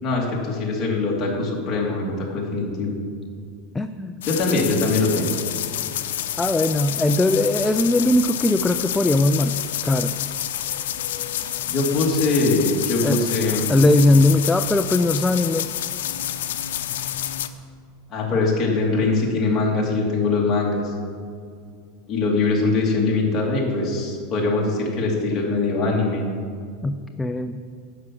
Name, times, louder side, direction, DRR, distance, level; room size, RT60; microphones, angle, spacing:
voice 1, 0.0-3.0 4.2-5.4 11.7-13.7 18.1-20.9 22.1-26.2, left 3 dB, 25° left, -3 dB, 2.3 m, -22 dB
voice 2, 3.7-4.2 6.4-9.6 9.8-10.1 13.0-13.2 13.7-15.7 26.8-27.6, left 2 dB, 5° left, 7 dB, 0.3 m, -19 dB
sound 1, 4.2-17.5, left 11 dB, 85° left, 0.7 m, -28 dB
11.0 x 6.0 x 7.5 m, 2.2 s
supercardioid pair, 155°, 0 cm